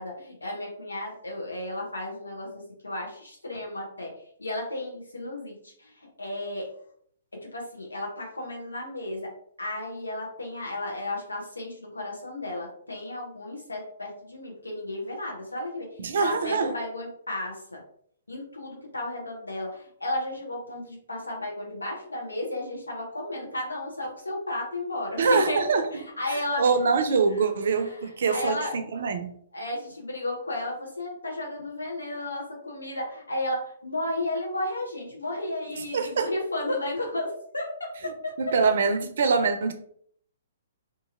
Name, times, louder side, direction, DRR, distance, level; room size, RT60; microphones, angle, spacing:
voice 1, 0.0-6.7 7.3-9.3 9.6-17.8 18.3-25.6 25.9-26.6 27.8-28.8 29.5-38.6, left 1 dB, 80° left, -1 dB, 1.0 m, -33 dB
voice 2, 16.0-16.7 25.2-25.8 26.6-29.3 35.9-36.3 38.4-39.7, right 4 dB, 60° right, 7 dB, 0.5 m, -24 dB
2.7 x 2.7 x 2.6 m, 0.63 s
figure-of-eight pair, 120°, 0 cm